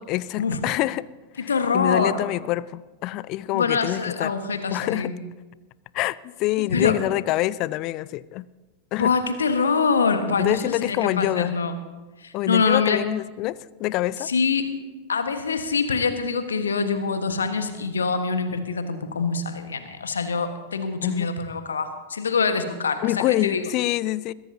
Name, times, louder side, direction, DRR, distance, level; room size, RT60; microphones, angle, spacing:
voice 1, 0.1-1.1 1.4-4.3 4.7-5.1 5.9-8.4 8.9-9.1 10.4-11.5 12.3-14.3 21.0-21.3 23.0-24.3, left 16 dB, 40° left, 21 dB, 0.3 m, -26 dB
voice 2, 1.4-2.2 3.5-5.2 6.6-7.0 9.0-11.7 12.2-13.0 14.2-14.7 15.1-23.7, left 5 dB, 70° left, 9 dB, 1.4 m, -24 dB
22.0 x 15.5 x 2.8 m, 1.3 s
figure-of-eight pair, 90°, 0 cm